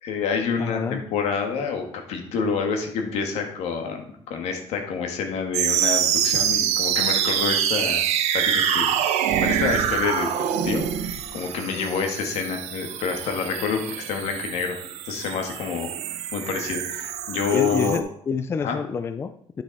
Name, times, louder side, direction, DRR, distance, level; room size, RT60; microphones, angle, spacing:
voice 1, 0.0-8.0 8.3-8.9 9.4-10.3 10.6-14.7 15.0-15.9 16.3-18.0 18.6-18.8, left 5 dB, 75° left, 4 dB, 1.8 m, -27 dB
voice 2, 0.6-1.0 17.5-19.6, left 5 dB, 25° left, 9 dB, 0.3 m, -28 dB
sound 1, 5.5-18.0, right 9 dB, 90° right, 0.9 m, -25 dB
9.9 x 6.2 x 4.2 m, 0.66 s
cardioid pair, 165°, 11 cm